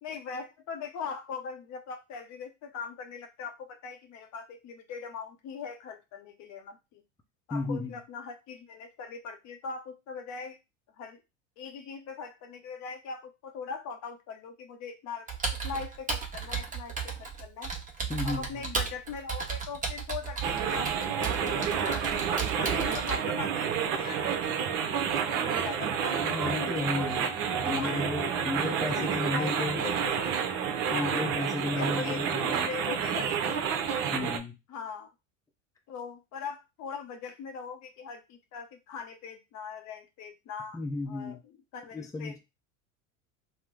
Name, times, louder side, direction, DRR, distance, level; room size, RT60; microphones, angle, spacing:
voice 1, 0.0-7.0 7.5-10.6 11.0-11.2 11.6-15.3 15.6-17.7 18.2-27.4 27.7-28.5 28.9-30.6 30.9-31.2 31.7-33.7 34.7-35.1 35.9-40.8 41.1-42.4, left 5 dB, 45° left, 0.7 m, -41 dB
voice 2, 7.5-8.0 18.1-18.5 26.2-27.3 27.6-29.8 30.9-32.6 34.1-34.5 40.7-41.4 41.9-42.4, left 2 dB, 10° left, 0.6 m, -33 dB
Computer keyboard, 15.3-23.2, right 5 dB, 20° right, 0.9 m, -34 dB
sound 1, 20.4-34.4, right 7 dB, 50° right, 0.7 m, -29 dB
3.0 x 2.1 x 3.7 m
hypercardioid pair, 90°, 38 cm